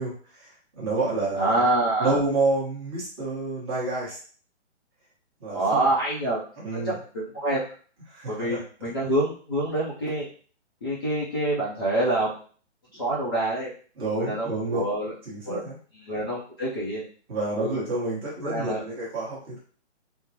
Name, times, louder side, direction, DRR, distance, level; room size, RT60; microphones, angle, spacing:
voice 1, 0.0-1.7 2.0-4.2 5.4-5.8 6.6-6.9 8.1-8.6 14.0-14.8 15.2-15.8 17.3-19.6, right 2 dB, 20° right, -6 dB, 1.1 m, -29 dB
voice 2, 1.4-2.2 5.5-6.4 6.7-6.8 7.1-7.6 8.3-10.3 10.8-12.3 12.9-13.7 14.2-15.1 15.4-15.6 15.9-17.0 17.6-17.8 18.4-18.8, right 1 dB, 20° left, -8 dB, 0.5 m, -26 dB
3.6 x 2.1 x 2.8 m, 0.42 s
hypercardioid pair, 160°, 35 cm